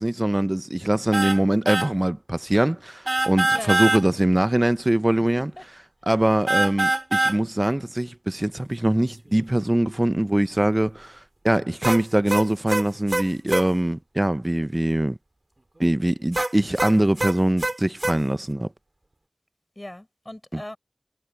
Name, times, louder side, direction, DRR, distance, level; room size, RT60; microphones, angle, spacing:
voice 1, 0.0-5.5 6.1-11.2 11.4-15.2 15.8-18.7 20.5-20.6, right 1 dB, 25° right, 0.7 m, -22 dB
sound 1, 1.1-1.4 1.7-1.9 3.1-4.0 6.5-7.4 11.8-13.7 16.3-18.2, right 1 dB, 45° right, 2.2 m, -24 dB
voice 2, 19.8-20.8, left 1 dB, 25° left, 5.7 m, -38 dB
wide cardioid pair, 50°, 0 cm